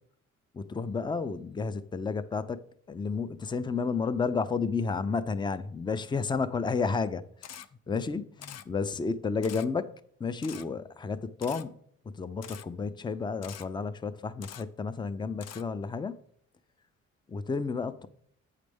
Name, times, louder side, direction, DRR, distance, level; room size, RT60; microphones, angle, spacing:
voice 1, 0.5-7.2 7.9-9.9 10.2-11.8 12.2-16.2 17.3-18.1, left 4 dB, 15° left, 0.5 m, -31 dB
Camera, 7.4-7.7 8.4-8.6 9.4-9.7 10.4-10.6 11.4-11.6 12.4-12.6 13.4-13.6 14.4-14.6 15.4-15.6, left 9 dB, 60° left, 0.6 m, -44 dB
8.4 x 6.5 x 3.5 m
cardioid pair, 90°, 30 cm